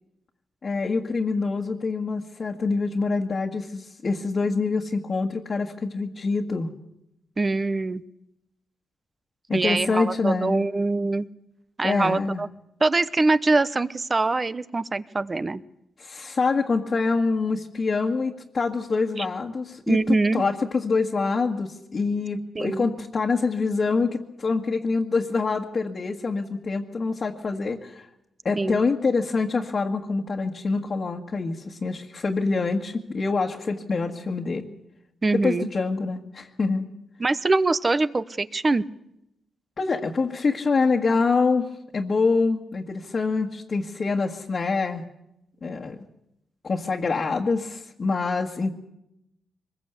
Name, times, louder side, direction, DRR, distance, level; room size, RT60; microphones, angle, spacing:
voice 1, 0.6-6.7 9.5-10.6 11.8-12.4 16.0-28.1 28.5-34.7 35.4-36.9 39.8-45.0 45.6-46.0 46.6-48.7, left 4 dB, 40° left, -1 dB, 1.8 m, -25 dB
voice 2, 7.4-8.0 9.5-11.3 11.8-12.5 12.8-15.6 19.2-19.3 19.9-20.5 22.5-22.9 28.6-28.8 35.2-35.7 37.2-38.8, right 3 dB, 25° right, 15 dB, 0.9 m, -23 dB
24.5 x 21.0 x 8.2 m, 0.83 s
cardioid pair, 130°, 0 cm